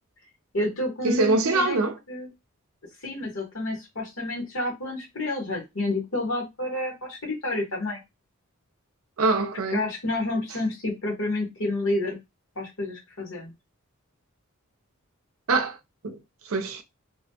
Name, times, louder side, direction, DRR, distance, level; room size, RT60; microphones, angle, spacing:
voice 1, 0.5-1.8 2.1-2.3 3.0-8.0 9.7-12.2 12.5-13.5, left 2 dB, 65° left, 1.3 m, -29 dB
voice 2, 1.0-2.0 9.2-9.8 15.5-15.8 16.0-16.8, right 3 dB, 70° right, 0.5 m, -24 dB
3.1 x 2.1 x 2.8 m
head